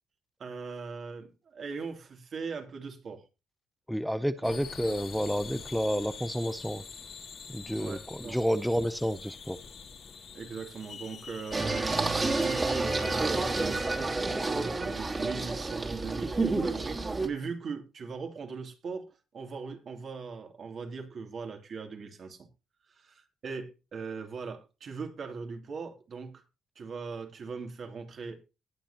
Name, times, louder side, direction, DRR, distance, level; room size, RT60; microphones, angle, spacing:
voice 1, 0.4-3.2 4.4-4.6 7.8-8.4 10.3-22.5 22.9-26.4 26.8-28.5, right 5 dB, 50° right, 2.9 m, -40 dB
voice 2, 3.9-6.8 7.5-9.6, equal, ahead, 0.6 m, -30 dB
sound 1, 4.4-14.0, left 6 dB, 60° left, 2.4 m, -46 dB
Singing, 11.5-17.3, right 3 dB, 25° right, 2.7 m, -29 dB
19.0 x 7.5 x 2.9 m
cardioid pair, 90°, 0 cm